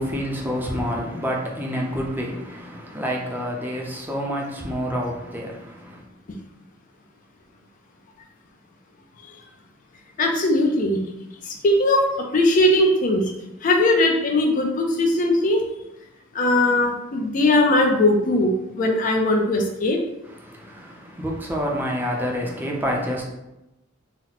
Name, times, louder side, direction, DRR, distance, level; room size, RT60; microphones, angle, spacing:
voice 1, 0.0-6.0 20.2-23.2, equal, 10° right, -1 dB, 0.5 m, -28 dB
voice 2, 10.2-11.0 11.6-12.1 12.3-13.2 13.6-15.6 16.3-20.0, left 1 dB, 45° left, 1 dB, 0.4 m, -19 dB
2.8 x 2.1 x 4.0 m, 0.93 s
head